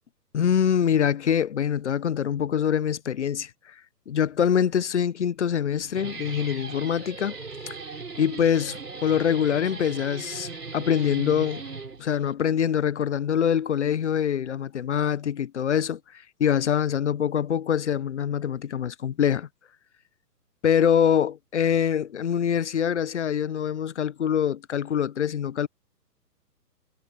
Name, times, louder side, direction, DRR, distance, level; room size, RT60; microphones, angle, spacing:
voice 1, 0.3-3.7 4.1-7.4 7.7-7.8 8.2-11.6 12.0-19.5 20.6-25.7, left 8 dB, 45° left, 1.1 m, -24 dB
Guitar, 5.7-12.3, right 4 dB, 70° right, 6.5 m, -38 dB
figure-of-eight pair, 130°, 49 cm